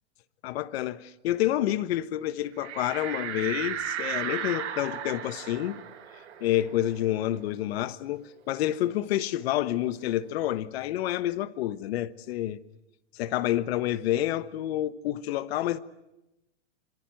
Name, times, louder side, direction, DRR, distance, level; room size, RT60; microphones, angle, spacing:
voice 1, 0.4-5.8 6.4-12.6 13.1-15.8, left 13 dB, 60° left, 1.3 m, -28 dB
sound 1, 2.6-7.8 8.1-8.2 8.6-10.2, right 10 dB, 75° right, 6.4 m, -36 dB
26.5 x 22.5 x 7.7 m
supercardioid pair, 145°, 35 cm